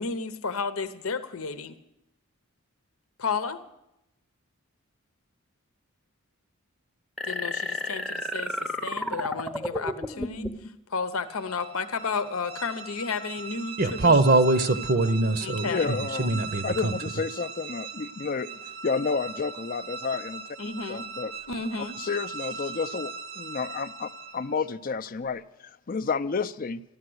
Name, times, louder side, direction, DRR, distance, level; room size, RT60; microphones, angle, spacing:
voice 1, 0.0-1.7 3.2-3.6 7.2-10.5 10.9-14.1 14.7-14.8 15.4-15.9 20.6-21.0 21.5-22.0, left 4 dB, 90° left, 12 dB, 0.9 m, -32 dB
sound 1, 7.2-10.7, left 1 dB, ahead, 0.7 m, -32 dB
sound 2, 11.3-24.7, right 5 dB, 85° right, 1.0 m, -39 dB
voice 2, 13.8-16.9, right 2 dB, 45° right, 10 dB, 0.7 m, -23 dB
voice 3, 15.6-18.5 18.8-20.4 20.9-21.3 22.0-26.8, left 5 dB, 40° left, 12 dB, 0.5 m, -31 dB
14.0 x 12.0 x 7.9 m, 0.86 s
head